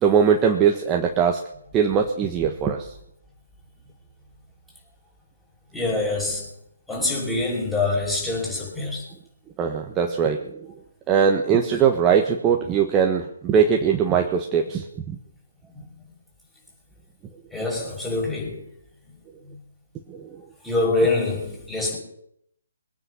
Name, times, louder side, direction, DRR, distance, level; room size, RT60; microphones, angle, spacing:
voice 1, 0.0-1.4 1.7-2.9 8.8-8.9 9.6-10.7 11.1-15.1 20.1-20.3, right 7 dB, 15° right, 1.3 m, -21 dB
voice 2, 5.7-6.5 6.9-9.1 15.8-15.9 17.5-18.6 19.5-19.6 20.6-22.0, left 2 dB, 5° left, 6.1 m, -25 dB
22.5 x 9.5 x 5.6 m
figure-of-eight pair, 140°, 0 cm